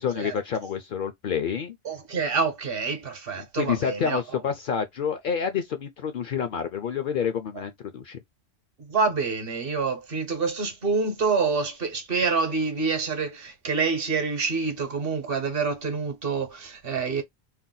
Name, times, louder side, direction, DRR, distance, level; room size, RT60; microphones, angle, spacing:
voice 1, 0.0-1.8 3.6-8.2, left 7 dB, 60° left, 0.6 m, -28 dB
voice 2, 1.8-4.2 8.8-17.2, right 4 dB, 60° right, 1.0 m, -27 dB
2.7 x 2.1 x 3.8 m
omnidirectional pair, 1.1 m